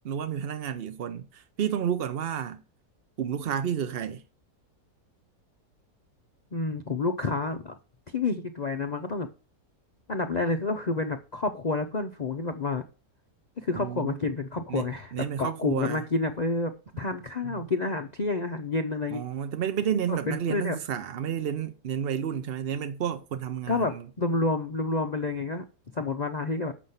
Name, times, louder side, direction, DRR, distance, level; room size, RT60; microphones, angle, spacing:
voice 1, 0.0-2.6 3.2-4.2 13.7-14.2 14.7-16.0 17.4-17.6 19.1-24.0, right 8 dB, 60° right, 0.6 m, -31 dB
voice 2, 6.5-7.8 8.1-9.3 10.1-12.8 13.6-15.1 15.4-16.7 17.0-19.2 20.1-20.8 23.7-25.6 25.9-26.7, left 3 dB, 65° left, 0.4 m, -29 dB
7.8 x 6.2 x 5.6 m
omnidirectional pair, 1.7 m